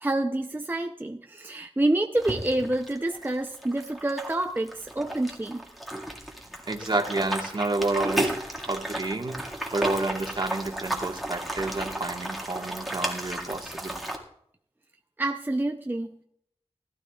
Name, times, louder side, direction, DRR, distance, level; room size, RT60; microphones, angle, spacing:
voice 1, 0.0-5.6 15.2-16.2, right 1 dB, 20° right, 4 dB, 0.6 m, -28 dB
sound 1, 2.2-14.2, right 1 dB, ahead, 2.0 m, -34 dB
voice 2, 6.7-8.4 8.6-14.0, right 2 dB, 45° right, 3 dB, 1.6 m, -30 dB
19.5 x 12.0 x 2.4 m, 0.71 s
wide cardioid pair, 55°, 11 cm